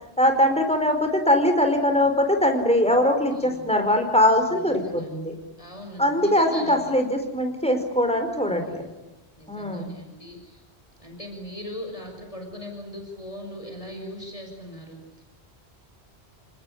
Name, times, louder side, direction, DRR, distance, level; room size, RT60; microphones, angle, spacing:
voice 1, 0.2-5.3 6.0-8.9 9.5-9.9, left 1 dB, 5° left, 5 dB, 4.7 m, -21 dB
voice 2, 3.3-3.7 4.3-5.1 5.6-6.8 8.5-8.9 9.4-10.6 11.0-15.2, left 1 dB, 30° left, 2 dB, 6.1 m, -40 dB
28.0 x 20.0 x 10.0 m, 1.0 s
omnidirectional pair, 1.1 m